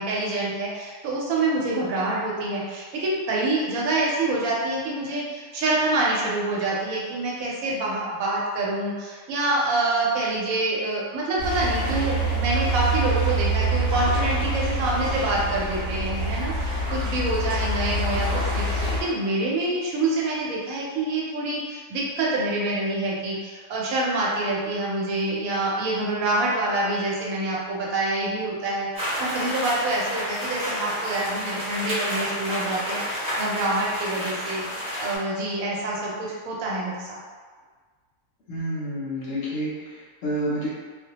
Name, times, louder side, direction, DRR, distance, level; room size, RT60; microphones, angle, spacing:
voice 1, 0.0-34.6 35.0-37.2, right 2 dB, 75° right, -4 dB, 1.0 m, -26 dB
sound 1, 11.4-19.0, right 2 dB, 30° right, 0.9 m, -25 dB
sound 2, 28.9-35.2, equal, 5° right, 0.5 m, -30 dB
voice 2, 38.5-40.7, equal, 65° left, -7 dB, 0.8 m, -29 dB
2.3 x 2.1 x 2.8 m, 1.5 s
omnidirectional pair, 1.5 m